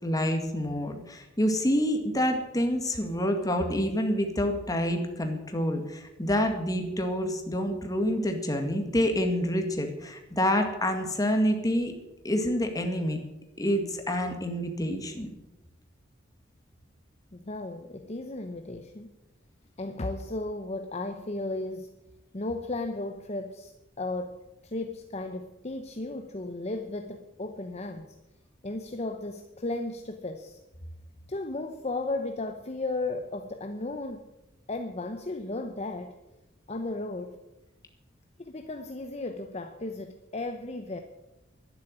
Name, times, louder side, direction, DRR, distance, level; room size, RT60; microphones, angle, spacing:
voice 1, 0.0-11.9 12.2-13.2 13.6-15.3, equal, 20° left, 4 dB, 2.1 m, -27 dB
voice 2, 17.3-19.1 19.8-21.9 22.3-23.7 24.0-28.2 28.6-30.6 31.3-34.3 34.7-36.2 36.7-37.4 38.4-41.0, left 2 dB, 35° left, 7 dB, 0.9 m, -35 dB
12.0 x 10.5 x 9.0 m, 0.97 s
head